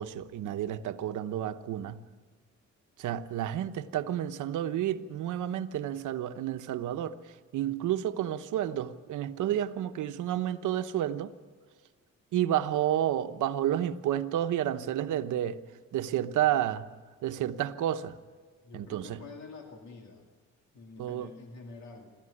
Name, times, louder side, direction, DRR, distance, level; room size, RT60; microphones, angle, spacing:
voice 1, 0.0-2.0 3.0-7.2 7.5-11.3 12.3-15.6 15.9-16.9 17.2-18.2 18.7-19.2 21.0-21.3, right 11 dB, 80° right, 1.1 m, -30 dB
voice 2, 18.6-20.2 20.7-22.1, left 3 dB, 70° left, 2.4 m, -47 dB
26.0 x 14.0 x 9.9 m
cardioid pair, 90°, 30 cm